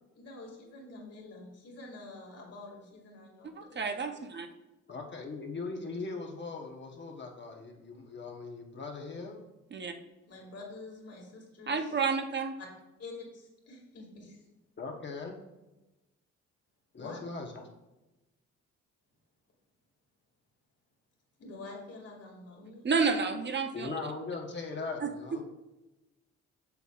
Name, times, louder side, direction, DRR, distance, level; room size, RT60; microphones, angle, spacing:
voice 1, 0.2-3.8 10.3-11.9 12.6-12.7 13.0-14.4 17.0-17.2 21.4-22.9, left 3 dB, 55° left, -1 dB, 2.2 m, -47 dB
voice 2, 3.4-4.5 9.7-9.9 11.7-12.6 22.8-24.0 25.0-25.1, right 5 dB, 35° right, 6 dB, 0.7 m, -30 dB
voice 3, 4.9-9.5 14.8-15.4 16.9-17.6 23.7-25.4, left 4 dB, 40° left, 1 dB, 1.1 m, -39 dB
6.9 x 6.7 x 2.4 m, 1.0 s
cardioid pair, 90°, 30 cm